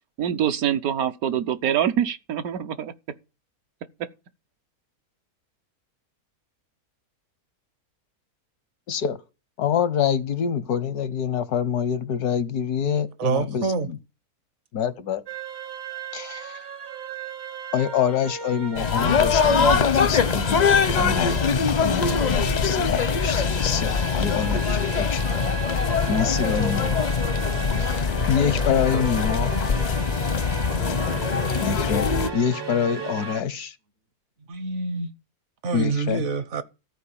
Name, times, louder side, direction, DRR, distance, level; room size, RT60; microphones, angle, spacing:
voice 1, 0.2-2.9, right 9 dB, 75° right, 1.3 m, -24 dB
voice 2, 9.6-14.0 14.7-15.2 16.1-16.6 17.7-25.2 26.1-27.0 27.8-29.5 31.6-33.7 35.7-36.2, left 8 dB, 90° left, 1.5 m, -26 dB
voice 3, 13.2-13.9 34.5-35.1 35.6-36.6, right 4 dB, 55° right, 1.1 m, -26 dB
sound 1, 15.3-33.4, right 5 dB, 30° right, 0.5 m, -36 dB
sound 2, 18.7-32.3, left 5 dB, 45° left, 0.5 m, -22 dB
14.0 x 4.8 x 8.6 m
omnidirectional pair, 1.6 m